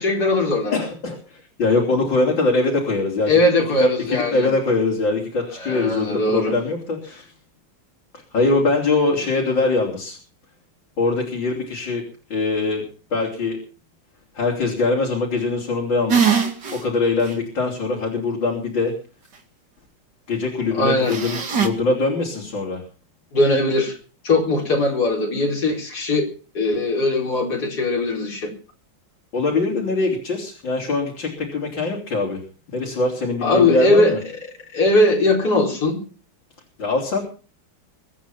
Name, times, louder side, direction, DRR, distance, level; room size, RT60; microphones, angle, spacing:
voice 1, 0.0-0.7 3.3-4.5 5.6-6.5 20.7-21.2 23.3-24.0 24.2-26.3 26.5-28.5 33.4-34.1 34.7-36.0, left 2 dB, 55° left, -1 dB, 4.8 m, -19 dB
voice 2, 0.7-3.4 3.8-7.2 8.1-10.2 11.0-12.0 12.3-13.6 14.4-16.3 16.7-18.9 20.3-22.8 29.3-32.4 32.7-34.2 36.8-37.2, left 3 dB, 80° left, -2 dB, 4.3 m, -22 dB
sound 1, 16.1-16.8 17.3-17.4 21.1-21.7, right 6 dB, 65° right, 2.8 m, -20 dB
23.5 x 9.5 x 5.7 m, 0.38 s
omnidirectional pair, 2.0 m